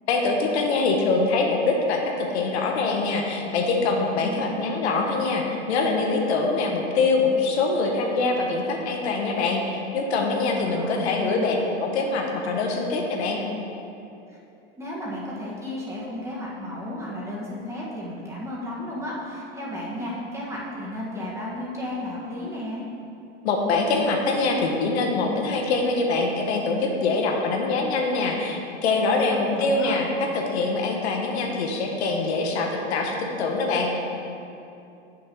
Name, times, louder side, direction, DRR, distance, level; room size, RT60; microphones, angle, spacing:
voice 1, 0.1-13.4 23.4-30.1 30.3-34.0, left 3 dB, 70° left, 1 dB, 1.4 m, -24 dB
voice 2, 4.2-4.6 10.6-11.6 14.3-14.4 14.8-22.8 29.3-29.9, left 1 dB, 10° right, -5 dB, 1.8 m, -33 dB
7.9 x 6.4 x 5.4 m, 2.7 s
supercardioid pair, 135°, 34 cm